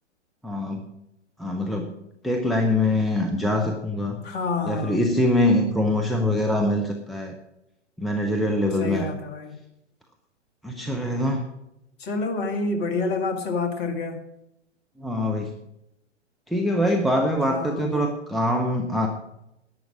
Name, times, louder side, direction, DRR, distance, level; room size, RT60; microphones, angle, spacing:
voice 1, 0.4-0.9 1.4-1.9 2.2-4.2 4.6-7.4 8.0-9.1 10.6-11.4 15.0-15.5 16.5-19.1, left 1 dB, ahead, 3 dB, 0.8 m, -23 dB
voice 2, 4.2-5.0 8.8-9.5 12.0-14.2 17.5-18.1, left 3 dB, 30° left, 4 dB, 2.2 m, -28 dB
11.0 x 9.3 x 7.3 m, 0.87 s
figure-of-eight pair, 120°, 36 cm